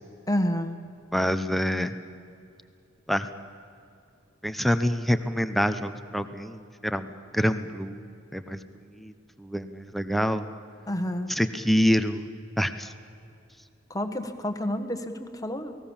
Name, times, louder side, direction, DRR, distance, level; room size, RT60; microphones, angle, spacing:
voice 1, 0.3-0.8 10.9-11.3 13.9-15.8, left 1 dB, 20° left, 6 dB, 1.6 m, -29 dB
voice 2, 1.1-1.9 3.1-3.3 4.4-7.1 7.3-8.6 8.9-9.1 9.4-10.5 11.3-12.3 12.6-12.9, equal, ahead, 10 dB, 0.9 m, -26 dB
28.5 x 19.5 x 7.3 m, 2.5 s
head